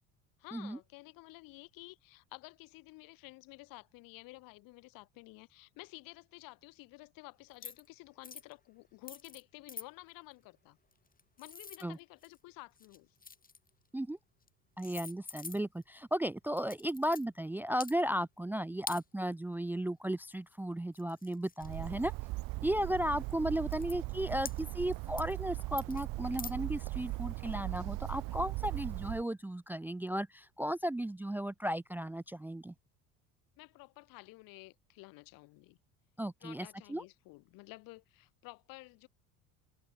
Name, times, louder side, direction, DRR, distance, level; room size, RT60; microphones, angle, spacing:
voice 1, 0.4-10.8 11.4-13.1 23.1-23.3 33.6-35.8 36.4-39.1, left 23 dB, 70° left, 5.8 m, -52 dB
sound 1, 7.5-7.9 8.2-8.5 9.1-9.4 9.7-9.9 10.9-12.4 12.8-13.7 14.4-14.5 14.8-15.8 16.6-17.3 17.7-17.9 18.9-19.0 20.5-20.6 20.9-22.1 22.8-22.9 23.3-23.4 23.7-24.0 24.5-24.9 25.2-25.4 25.8-26.1 26.4-26.5, left 4 dB, 25° left, 4.3 m, -45 dB
voice 2, 14.8-22.1 22.6-32.7 36.2-37.0, right 1 dB, 5° right, 0.6 m, -35 dB
Bird, 21.6-29.2, right 21 dB, 65° right, 2.0 m, -39 dB
hypercardioid pair, 75°, 36 cm